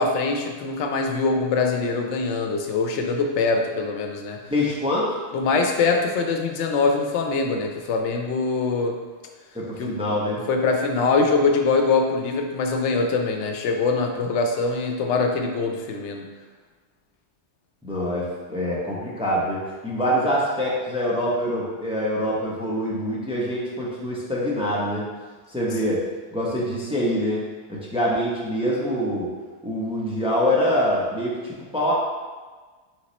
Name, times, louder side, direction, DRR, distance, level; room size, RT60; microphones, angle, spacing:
voice 1, 0.0-4.4 5.3-9.0 9.8-9.9 10.5-16.3, left 4 dB, 90° left, 3 dB, 0.9 m, -23 dB
voice 2, 4.5-5.2 9.5-10.4 17.8-25.1 25.5-26.0 26.3-29.3 29.6-31.9, equal, 5° right, -5 dB, 0.5 m, -25 dB
3.6 x 3.0 x 4.0 m, 1.4 s
omnidirectional pair, 1.2 m